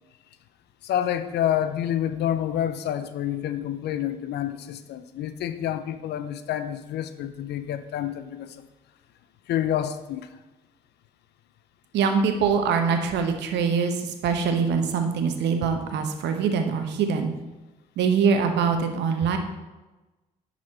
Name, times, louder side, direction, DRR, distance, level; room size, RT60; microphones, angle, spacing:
voice 1, 0.8-8.6 9.5-10.3, left 10 dB, 60° left, 12 dB, 0.6 m, -28 dB
voice 2, 11.9-17.3 18.0-19.4, right 6 dB, 65° right, 6 dB, 1.0 m, -23 dB
10.5 x 4.3 x 4.3 m, 1.1 s
hypercardioid pair, 50°, 20 cm